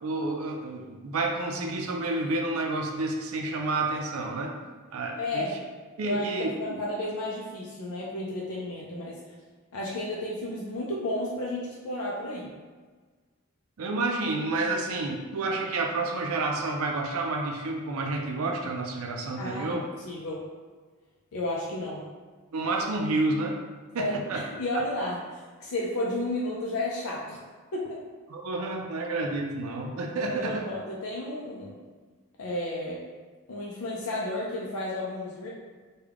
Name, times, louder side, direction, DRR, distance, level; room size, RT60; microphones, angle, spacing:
voice 1, 0.0-4.5 4.9-5.5 6.0-6.8 13.8-19.8 22.5-23.6 23.9-24.4 28.3-30.6, right 2 dB, 75° right, 2 dB, 0.4 m, -29 dB
voice 2, 5.2-5.5 6.0-9.2 9.7-12.5 19.4-19.8 20.0-20.4 21.3-22.1 24.0-27.4 27.7-28.0 30.2-31.8 32.4-33.0 33.5-35.5, left 1 dB, 80° left, -4 dB, 0.5 m, -32 dB
3.4 x 2.2 x 3.5 m, 1.4 s
head